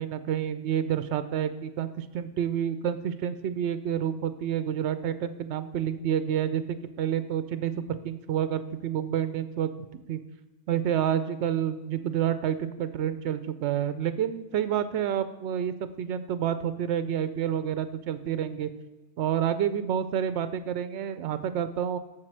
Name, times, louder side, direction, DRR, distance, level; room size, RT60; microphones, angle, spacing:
voice 1, 0.0-9.7 10.1-10.2 10.7-18.7 19.2-22.0, right 9 dB, 75° right, 13 dB, 0.9 m, -29 dB
7.6 x 6.3 x 6.3 m, 1.1 s
omnidirectional pair, 1.2 m